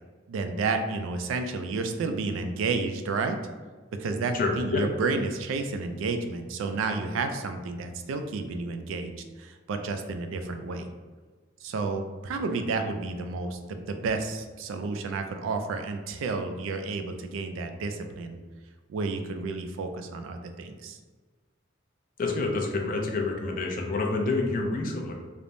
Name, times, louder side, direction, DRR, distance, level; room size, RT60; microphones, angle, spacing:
voice 1, 0.3-3.4 4.0-10.9 11.6-18.4 18.9-21.0, right 3 dB, 85° right, 7 dB, 0.3 m, -31 dB
voice 2, 4.3-4.8 22.2-25.1, left 3 dB, 45° left, 2 dB, 0.4 m, -28 dB
3.2 x 2.0 x 2.5 m, 1.3 s
head